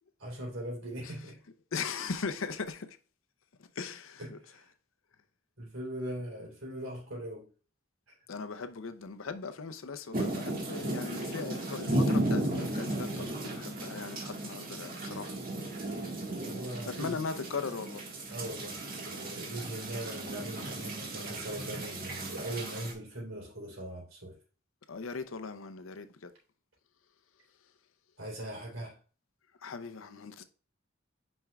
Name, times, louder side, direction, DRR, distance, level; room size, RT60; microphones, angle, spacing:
voice 1, 0.2-1.4 4.2-4.7 5.6-7.5 8.1-8.2 16.4-17.2 18.3-24.4 28.2-29.0, right 1 dB, 75° right, 3.4 m, -40 dB
voice 2, 1.7-3.0 3.8-4.4 8.3-15.4 17.0-18.0 24.9-26.3 29.6-30.4, left 4 dB, 75° left, 0.6 m, -39 dB
sound 1, 10.1-22.9, right 1 dB, 45° right, 1.6 m, -35 dB
8.9 x 5.3 x 2.3 m
head